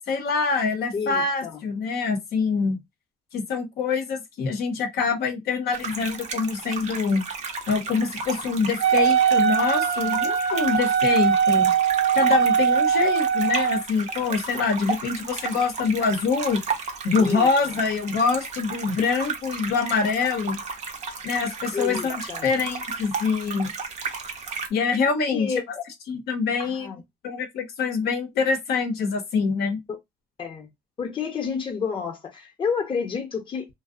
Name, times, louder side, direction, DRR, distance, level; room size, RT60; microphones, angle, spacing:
voice 1, 0.1-2.8 3.3-7.2 7.7-11.7 12.1-16.6 17.0-20.6 21.2-23.7 24.7-25.5 26.1-26.9 27.2-29.8, left 5 dB, 70° left, 0.7 m, -25 dB
voice 2, 0.9-1.6 17.2-17.7 21.7-22.5 25.3-25.9 26.6-27.0 30.4-30.7 31.0-33.7, left 6 dB, 30° left, 0.7 m, -30 dB
sound 1, 5.7-24.7, right 5 dB, 45° right, 0.6 m, -34 dB
Wind instrument woodwind instrument, 8.8-13.8, right 8 dB, 80° right, 0.7 m, -21 dB
2.6 x 2.0 x 2.4 m
cardioid pair, 110°, 17 cm